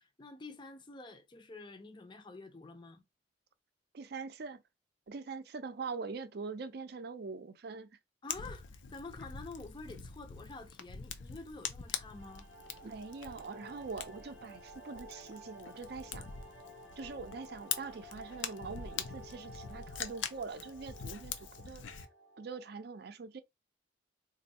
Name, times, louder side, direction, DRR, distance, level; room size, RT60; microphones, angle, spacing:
voice 1, 0.0-3.0 8.2-12.5, left 3 dB, 25° left, 0.5 m, -48 dB
voice 2, 3.9-4.6 5.1-7.9 12.8-16.3 17.0-21.8 22.4-23.4, right 4 dB, 60° right, 0.5 m, -43 dB
Fire, 8.3-22.1, left 7 dB, 90° left, 0.5 m, -44 dB
sound 1, 11.8-22.9, equal, 65° left, 0.9 m, -53 dB
2.6 x 2.5 x 4.1 m
head